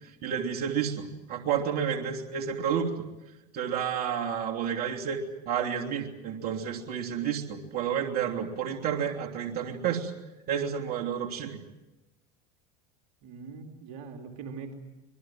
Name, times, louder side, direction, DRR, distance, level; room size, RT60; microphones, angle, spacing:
voice 1, 0.0-3.0 3.5-10.1 10.5-11.6, right 8 dB, 50° right, 0 dB, 3.2 m, -30 dB
voice 2, 13.2-14.8, right 5 dB, 65° right, 3 dB, 3.0 m, -42 dB
26.0 x 21.5 x 7.7 m, 1.0 s
hypercardioid pair, 95°, 21 cm